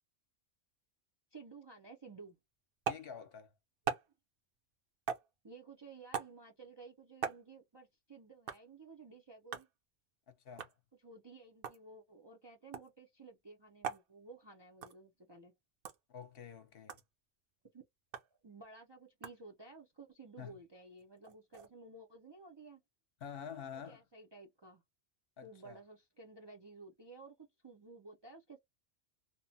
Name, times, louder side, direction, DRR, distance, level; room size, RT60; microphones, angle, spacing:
voice 1, 1.3-2.4 5.4-9.7 11.0-15.5 17.7-17.8 18.2-22.8 23.7-24.8 25.4-28.6, right 3 dB, 40° right, 0.4 m, -54 dB
sound 1, 2.8-3.1 3.9-4.1 5.1-5.3 6.1-6.4 7.2-7.4 8.5-8.6 9.5-9.7 10.6-10.8 11.5-11.8 12.7-12.9 13.8-14.1 14.8-15.0 15.8-16.0 16.9-17.0 18.1-18.3 19.2-19.4 21.0-21.7, right 7 dB, 60° right, 0.8 m, -39 dB
voice 2, 2.9-3.5 10.3-10.7 16.1-17.0 20.4-20.5 23.2-24.0 25.4-25.8, left 7 dB, 60° left, 0.8 m, -48 dB
2.9 x 2.0 x 2.7 m
omnidirectional pair, 1.2 m